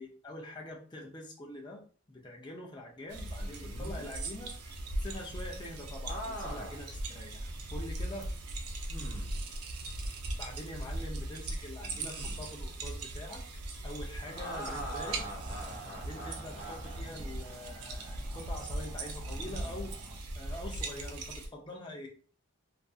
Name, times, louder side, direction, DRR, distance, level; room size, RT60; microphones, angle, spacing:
voice 1, 0.0-1.8 2.1-4.7 5.0-8.3 10.4-15.2 15.9-19.9 20.3-22.1, left 1 dB, 20° left, 0 dB, 0.4 m, -45 dB
sound 1, 3.1-21.5, right 2 dB, 85° right, 0.5 m, -39 dB
sound 2, 3.4-4.1 6.1-6.9 7.5-7.6 8.9-9.4 11.8-12.5 14.2-17.1 19.3-19.7, right 1 dB, 40° left, 0.9 m, -43 dB
sound 3, 14.6-20.2, right 1 dB, 10° right, 1.0 m, -50 dB
2.5 x 2.5 x 2.3 m, 0.41 s
head